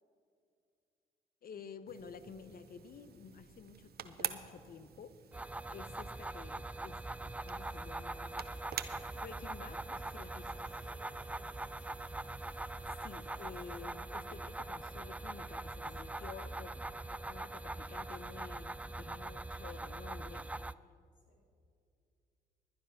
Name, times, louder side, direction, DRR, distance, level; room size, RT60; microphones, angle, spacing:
voice 1, 1.4-5.2 5.7-7.0 7.2-8.5 9.1-10.5 13.0-16.7 17.1-20.5, left 6 dB, 50° left, 12 dB, 0.7 m, -51 dB
sound 1, 1.9-13.8, right 9 dB, 60° right, 0.8 m, -49 dB
sound 2, 5.3-20.7, right 2 dB, 5° right, 0.3 m, -42 dB
voice 2, 10.2-12.0 15.8-16.3 21.1-21.4, left 1 dB, 75° left, -1 dB, 2.8 m, -65 dB
11.0 x 9.7 x 6.2 m, 2.5 s
hypercardioid pair, 45°, 19 cm